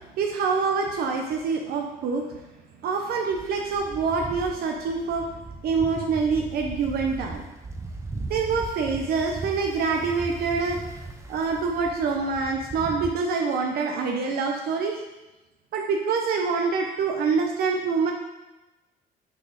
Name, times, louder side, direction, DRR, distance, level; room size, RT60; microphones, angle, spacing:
voice 1, 0.2-2.3 2.8-5.2 5.6-7.4 8.3-10.8 11.3-15.0 15.7-18.1, right 5 dB, 65° right, 1 dB, 0.8 m, -25 dB
sound 1, 3.4-13.1, right 2 dB, 15° right, 0.6 m, -38 dB
6.3 x 4.1 x 4.0 m, 1.1 s
cardioid pair, 110°, 17 cm